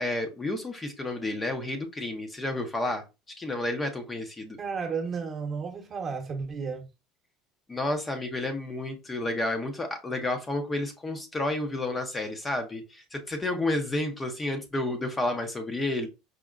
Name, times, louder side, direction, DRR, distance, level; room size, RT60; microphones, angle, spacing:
voice 1, 0.0-3.0 3.4-4.6 7.7-16.1, left 2 dB, 20° left, 0.6 m, -31 dB
voice 2, 4.6-6.9, right 5 dB, 35° right, 0.9 m, -33 dB
4.9 x 2.1 x 2.3 m
supercardioid pair, 105°, 0 cm